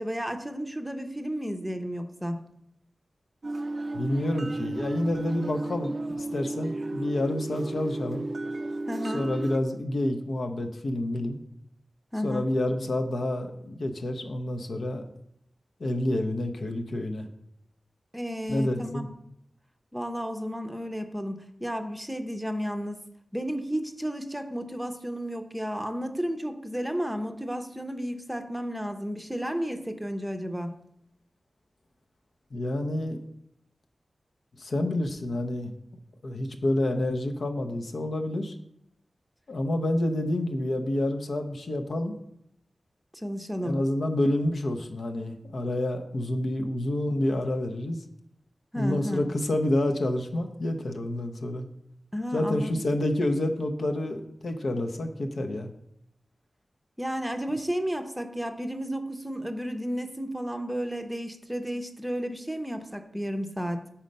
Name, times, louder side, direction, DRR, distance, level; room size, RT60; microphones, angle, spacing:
voice 1, 0.0-2.4 8.9-9.3 12.1-12.5 18.1-19.1 19.9-23.0 23.3-30.7 43.2-43.8 48.7-49.2 52.1-52.8 57.0-63.8, equal, 5° right, 6 dB, 0.6 m, -32 dB
sound 1, 3.4-9.6, right 2 dB, 50° right, 0.3 m, -33 dB
voice 2, 3.9-8.3 9.0-11.4 12.2-15.1 15.8-17.3 18.5-19.1 32.5-33.2 34.6-35.7 36.2-38.5 39.5-42.1 43.6-48.0 48.7-51.7 52.3-55.7, left 1 dB, 75° left, 4 dB, 0.7 m, -28 dB
6.4 x 4.3 x 5.3 m, 0.77 s
wide cardioid pair, 90°, 0 cm